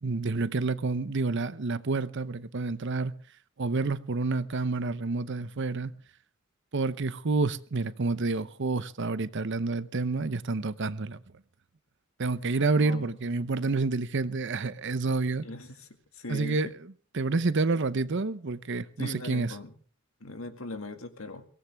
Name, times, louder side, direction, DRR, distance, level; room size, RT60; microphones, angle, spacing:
voice 1, 0.0-3.1 3.6-5.9 6.7-11.2 12.2-15.4 16.3-16.7 17.1-19.5, right 3 dB, 55° right, 0.7 m, -29 dB
voice 2, 12.8-13.2 15.3-15.9 16.1-16.7 19.0-19.8 20.2-21.4, left 2 dB, 70° left, 1.9 m, -40 dB
23.0 x 17.5 x 3.5 m
head